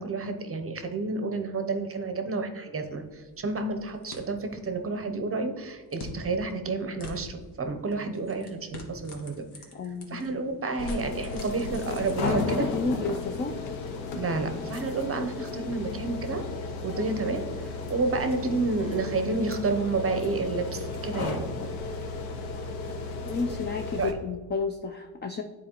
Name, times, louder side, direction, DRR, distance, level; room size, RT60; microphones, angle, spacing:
voice 1, 0.0-9.4 10.1-12.7 14.2-16.4 16.8-21.5 24.0-24.1, right 3 dB, 30° right, 7 dB, 0.7 m, -30 dB
sound 1, 2.8-13.1, left 2 dB, 60° left, 1.3 m, -48 dB
voice 2, 9.7-10.3 12.2-13.6 23.3-25.4, left 4 dB, 25° left, 5 dB, 0.4 m, -31 dB
sound 2, 10.8-24.1, left 3 dB, 90° left, 0.9 m, -34 dB
9.1 x 4.1 x 2.9 m, 1.4 s
cardioid pair, 85°, 46 cm